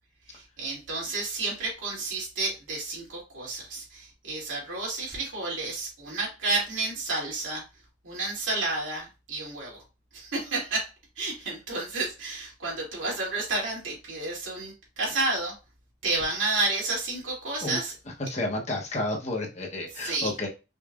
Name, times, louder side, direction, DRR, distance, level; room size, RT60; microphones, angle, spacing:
voice 1, 0.3-7.6 8.0-9.8 10.1-10.9 11.2-15.5 16.0-17.9 20.0-20.3, right 3 dB, 85° right, -4 dB, 2.6 m, -31 dB
voice 2, 18.2-20.5, left 2 dB, 35° left, 1 dB, 0.9 m, -31 dB
5.3 x 3.9 x 2.4 m, 0.29 s
head